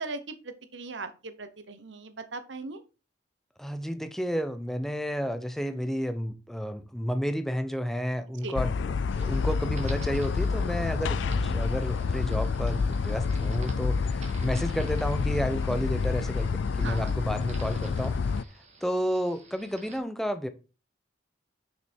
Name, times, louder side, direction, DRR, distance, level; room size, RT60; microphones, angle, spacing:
voice 1, 0.0-2.8 8.4-8.6 16.8-17.1, right 3 dB, 90° right, 1.1 m, -39 dB
voice 2, 3.6-18.2 18.8-20.5, equal, ahead, 0.6 m, -31 dB
sound 1, 8.6-18.4, left 5 dB, 90° left, 0.4 m, -28 dB
sound 2, 9.1-20.0, right 1 dB, 40° right, 1.8 m, -47 dB
6.6 x 5.9 x 4.4 m
head